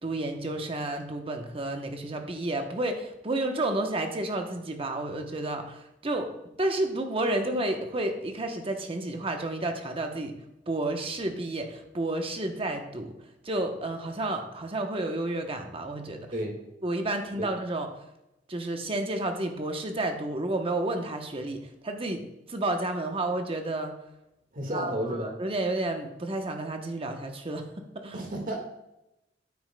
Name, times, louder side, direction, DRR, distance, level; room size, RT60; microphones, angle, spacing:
voice 1, 0.0-6.3 6.6-10.3 10.7-13.1 13.4-16.2 16.8-17.9 18.5-22.2 22.5-23.9 24.7-24.9 25.4-28.1, right 2 dB, 30° right, 4 dB, 0.9 m, -31 dB
voice 2, 24.5-25.3 28.1-28.6, right 1 dB, 50° right, 2 dB, 1.7 m, -32 dB
9.5 x 8.8 x 2.2 m, 0.90 s
head